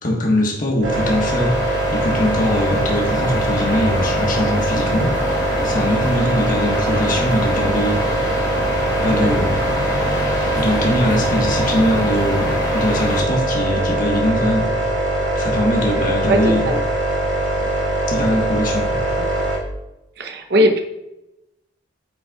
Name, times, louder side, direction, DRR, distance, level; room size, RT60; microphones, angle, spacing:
voice 1, 0.0-8.2 9.0-9.5 10.5-14.7 15.3-16.7 18.1-19.0, left 1 dB, 40° left, -1 dB, 1.4 m, -21 dB
sound 1, 0.8-19.6, right 1 dB, 75° right, 2.2 m, -22 dB
sound 2, 0.9-13.2, left 1 dB, 20° left, 1.3 m, -27 dB
voice 2, 15.9-16.8 20.2-20.8, equal, 55° right, 4 dB, 0.8 m, -20 dB
9.3 x 5.4 x 2.4 m, 0.93 s
head